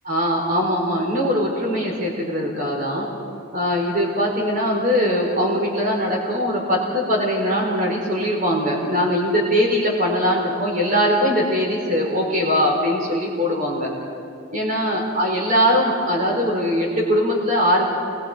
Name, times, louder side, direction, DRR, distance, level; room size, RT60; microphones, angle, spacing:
voice 1, 0.0-3.1 3.5-13.9 14.5-17.9, equal, 40° right, -1 dB, 4.7 m, -21 dB
29.5 x 22.5 x 5.2 m, 2.5 s
head